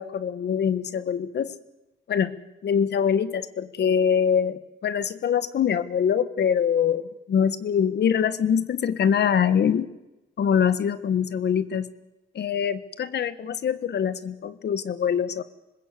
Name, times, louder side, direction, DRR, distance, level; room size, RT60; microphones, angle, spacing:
voice 1, 0.0-1.5 2.1-2.3 2.6-9.9 10.4-11.9 12.3-15.4, left 8 dB, 55° left, 13 dB, 1.5 m, -24 dB
25.5 x 20.5 x 8.3 m, 1.0 s
cardioid pair, 90°, 20 cm